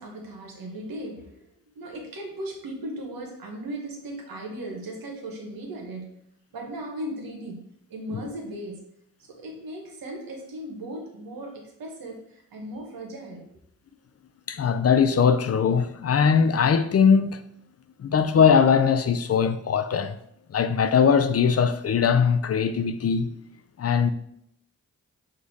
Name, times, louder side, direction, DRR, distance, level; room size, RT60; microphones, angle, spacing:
voice 1, 0.0-6.1 6.5-7.6 7.9-8.8 9.3-13.4, right 1 dB, 85° right, 1.1 m, -37 dB
voice 2, 14.5-17.4 18.0-20.2 20.5-23.3 23.8-24.1, left 6 dB, 45° left, 0.5 m, -20 dB
5.1 x 2.6 x 4.1 m
cardioid pair, 40°, 34 cm